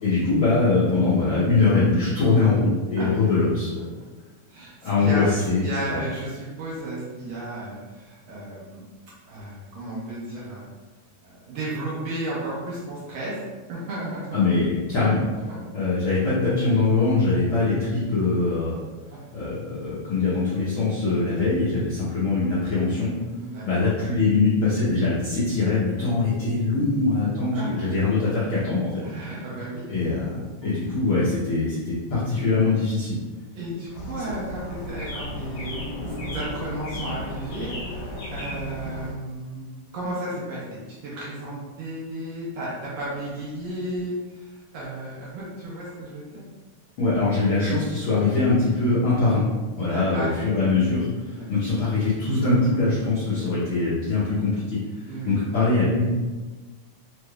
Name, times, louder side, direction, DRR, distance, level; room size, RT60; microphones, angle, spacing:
voice 1, 0.0-3.9 4.8-6.0 14.3-15.2 15.7-18.8 19.3-23.1 23.6-29.0 29.9-33.2 47.0-49.4 49.8-56.1, left 3 dB, 85° left, -10 dB, 1.1 m, -22 dB
voice 2, 4.5-5.4 5.6-8.8 9.3-10.7 11.2-13.4 13.7-14.5 15.5-15.6 19.1-19.2 23.4-23.6 27.5-27.9 29.0-29.9 33.5-46.4 49.7-50.3 51.4-51.5 55.1-55.3, right 1 dB, 70° right, -7 dB, 1.7 m, -33 dB
sound 1, 33.9-39.1, left 1 dB, 70° left, 1.8 m, -34 dB
5.1 x 3.2 x 2.3 m, 1.3 s
omnidirectional pair, 3.7 m